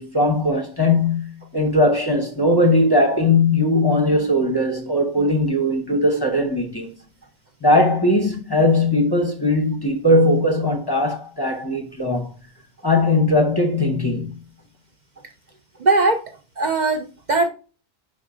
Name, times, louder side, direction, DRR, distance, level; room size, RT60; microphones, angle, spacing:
voice 1, 0.0-6.9 7.6-12.3 12.8-14.3, left 1 dB, 25° left, 0.7 m, -19 dB
voice 2, 15.8-16.2 16.6-17.5, right 3 dB, 50° right, 0.7 m, -19 dB
5.1 x 4.1 x 4.7 m
omnidirectional pair, 1.1 m